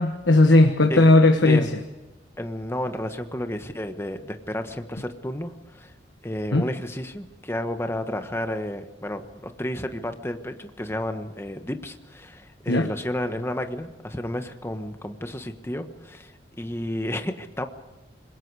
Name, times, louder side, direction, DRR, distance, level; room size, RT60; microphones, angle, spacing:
voice 1, 0.0-1.7 6.5-6.7 12.7-12.9, left 2 dB, 75° left, 5 dB, 1.3 m, -17 dB
voice 2, 2.4-5.9 6.2-16.3 16.6-17.7, left 1 dB, 15° left, 7 dB, 1.3 m, -31 dB
26.5 x 21.0 x 4.9 m, 1.1 s
head